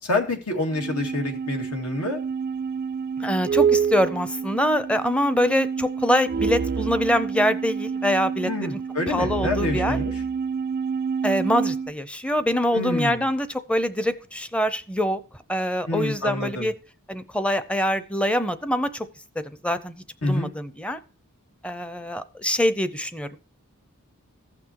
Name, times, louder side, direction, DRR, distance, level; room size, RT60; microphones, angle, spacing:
voice 1, 0.0-2.2 8.4-10.1 12.7-13.2 15.9-16.7 20.2-20.5, left 2 dB, 75° left, 2 dB, 2.3 m, -27 dB
sound 1, 0.7-11.9, right 6 dB, 45° right, 0.4 m, -27 dB
voice 2, 3.2-8.8 9.1-10.0 11.2-15.2 15.5-16.7 17.1-19.1 19.4-21.0 21.6-23.4, equal, 5° left, 12 dB, 0.6 m, -24 dB
15.0 x 5.9 x 3.0 m, 0.36 s
head